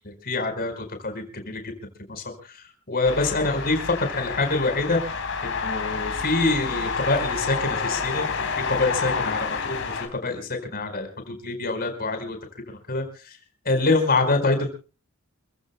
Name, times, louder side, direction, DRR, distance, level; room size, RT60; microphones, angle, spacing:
voice 1, 0.2-1.6 2.1-2.3 2.9-5.0 5.4-8.3 8.7-9.8 10.2-12.4 12.9-13.0 13.6-14.7, left 3 dB, 45° left, 6 dB, 4.7 m, -25 dB
sound 1, 3.0-10.1, left 5 dB, 65° left, 3.8 m, -29 dB
28.5 x 15.5 x 2.2 m, 0.36 s
head